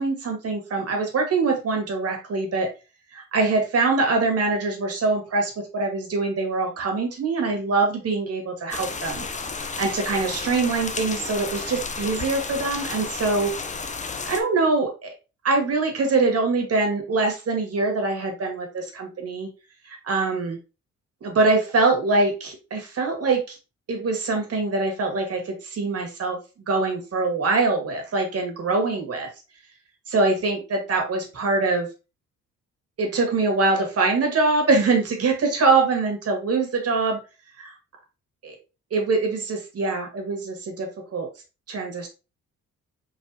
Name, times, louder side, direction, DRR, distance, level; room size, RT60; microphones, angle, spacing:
voice 1, 0.0-2.7 3.1-9.3 9.8-13.5 14.3-15.1 15.4-19.5 19.9-20.6 21.2-23.6 23.9-26.4 26.7-29.3 30.1-31.9 33.0-37.2 37.6-37.7 38.4-38.6 38.9-41.3 41.7-42.1, right 3 dB, 50° right, 3 dB, 1.9 m, -23 dB
sound 1, 8.7-14.4, left 4 dB, 25° left, 0.6 m, -32 dB
4.6 x 4.0 x 2.8 m, 0.31 s
cardioid pair, 90°, 30 cm